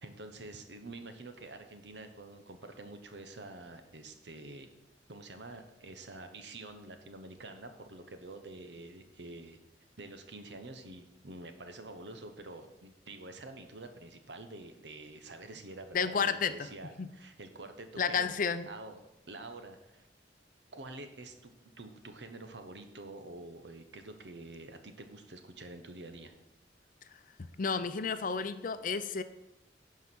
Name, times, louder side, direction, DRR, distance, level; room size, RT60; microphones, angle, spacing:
voice 1, 0.0-4.7 5.1-9.6 10.0-18.3 18.7-20.1 20.7-26.3, right 2 dB, 70° right, 7 dB, 1.0 m, -47 dB
voice 2, 15.9-16.7 17.0-17.1 18.0-18.7 27.6-29.2, left 5 dB, 50° left, 11 dB, 0.6 m, -31 dB
11.0 x 4.7 x 6.2 m, 0.93 s
head